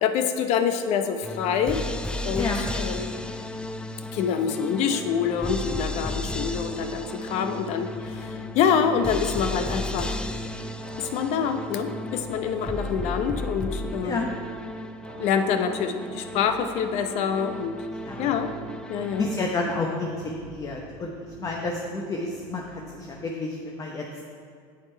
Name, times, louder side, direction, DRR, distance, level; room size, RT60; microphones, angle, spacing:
voice 1, 0.0-1.8 2.2-3.2 4.1-10.2 11.0-14.3 15.2-17.8 18.2-18.5 18.9-19.3, left 7 dB, 60° left, 8 dB, 0.7 m, -26 dB
sound 1, 1.2-19.7, left 2 dB, 5° left, 0.4 m, -34 dB
sound 2, 5.2-23.3, right 5 dB, 70° right, 1.4 m, -44 dB
voice 2, 19.2-24.1, left 3 dB, 25° left, 0 dB, 0.9 m, -30 dB
8.1 x 7.6 x 4.5 m, 2.3 s
supercardioid pair, 110°, 13 cm